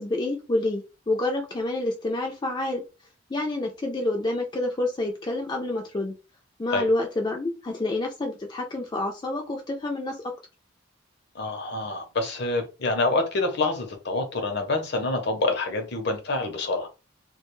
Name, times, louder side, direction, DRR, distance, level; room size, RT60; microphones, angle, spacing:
voice 1, 0.0-2.8 3.3-6.1 6.6-10.3, left 2 dB, 20° left, 0.4 m, -28 dB
voice 2, 11.3-16.9, left 2 dB, 55° left, 0.7 m, -27 dB
2.3 x 2.2 x 3.0 m
head